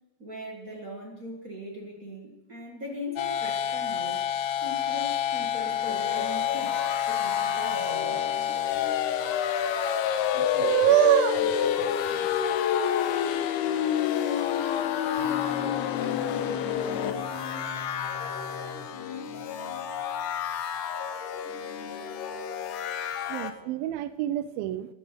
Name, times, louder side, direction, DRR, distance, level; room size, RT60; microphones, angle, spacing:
voice 1, 0.2-8.3, left 1 dB, 55° right, -1 dB, 0.9 m, -40 dB
sound 1, 3.2-17.1, left 9 dB, 85° left, 2.8 m, -28 dB
sound 2, 5.6-23.5, left 8 dB, 70° left, 2.0 m, -34 dB
voice 2, 10.4-11.7 23.3-24.9, right 12 dB, 85° right, 13 dB, 2.1 m, -25 dB
sound 3, 15.2-20.6, left 3 dB, 10° left, 2.3 m, -42 dB
14.0 x 10.5 x 5.9 m, 1.0 s
omnidirectional pair, 4.6 m